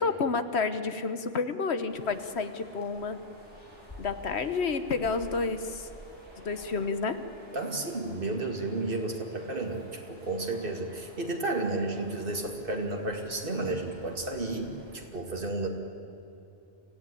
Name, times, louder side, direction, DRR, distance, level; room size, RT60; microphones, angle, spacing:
voice 1, 0.0-3.2 4.0-5.9 6.4-7.2, left 4 dB, 60° left, 10 dB, 1.4 m, -30 dB
sound 1, 1.9-15.0, equal, 20° left, 5.7 m, -51 dB
voice 2, 7.5-15.7, right 2 dB, 45° right, 2 dB, 2.5 m, -32 dB
25.0 x 15.5 x 10.0 m, 2.8 s
omnidirectional pair, 1.3 m